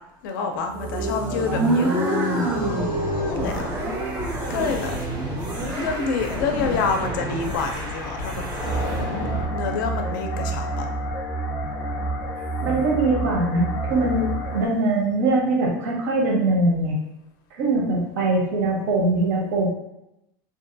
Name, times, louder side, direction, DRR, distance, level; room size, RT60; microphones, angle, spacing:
voice 1, 0.2-3.6 4.5-4.9 5.8-8.4 9.5-10.9, left 4 dB, 70° left, 5 dB, 0.4 m, -27 dB
sound 1, 0.7-7.6, right 1 dB, 20° right, 0.4 m, -27 dB
sound 2, 2.9-9.5, left 1 dB, 90° right, 1.3 m, -32 dB
sound 3, 8.6-14.7, right 2 dB, 20° left, 0.6 m, -28 dB
voice 2, 12.6-16.9 17.5-19.7, right 2 dB, 65° right, -1 dB, 0.7 m, -22 dB
2.6 x 2.2 x 2.5 m, 0.85 s
supercardioid pair, 180°, 11 cm